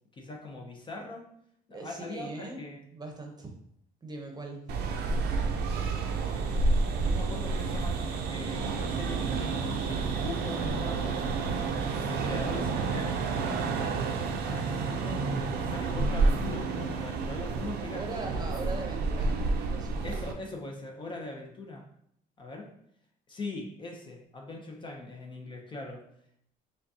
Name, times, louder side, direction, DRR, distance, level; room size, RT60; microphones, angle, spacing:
voice 1, 0.1-1.3 1.7-2.8 6.3-11.2 11.6-13.7 14.4-18.3 20.0-21.9 22.4-22.7 23.3-26.1, left 2 dB, 30° left, 1 dB, 0.6 m, -41 dB
voice 2, 1.7-2.6 2.9-3.5 4.0-4.6 17.9-19.3 19.5-20.0, right 3 dB, 25° right, 2 dB, 0.8 m, -40 dB
sound 1, 4.7-20.3, right 4 dB, 75° right, 0.5 m, -30 dB
5.0 x 2.3 x 2.7 m, 0.70 s
cardioid pair, 110°, 17 cm